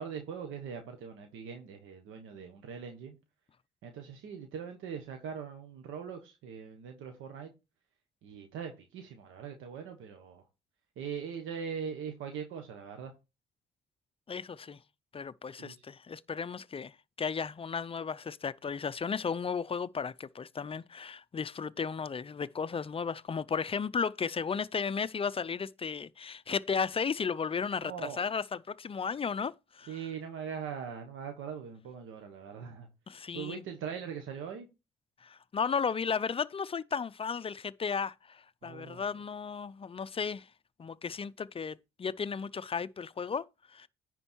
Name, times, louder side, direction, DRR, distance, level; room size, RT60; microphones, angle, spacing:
voice 1, 0.0-3.2 3.8-7.5 8.2-10.5 11.0-13.1 15.6-15.8 27.8-28.2 29.9-32.9 33.3-34.7 38.6-39.0, right 7 dB, 85° right, 1.4 m, -41 dB
voice 2, 14.3-14.8 15.1-30.0 33.1-33.6 35.2-40.5 40.8-43.9, left 6 dB, 30° left, 0.4 m, -34 dB
9.9 x 4.4 x 4.5 m
cardioid pair, 90°, 20 cm